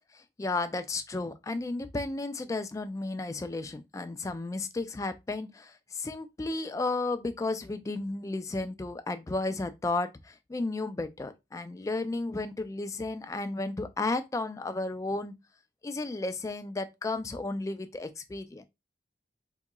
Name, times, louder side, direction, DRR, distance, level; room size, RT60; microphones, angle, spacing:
voice 1, 0.1-15.3 15.8-18.6, left 2 dB, 20° left, 0.3 m, -33 dB
3.8 x 2.8 x 2.2 m
head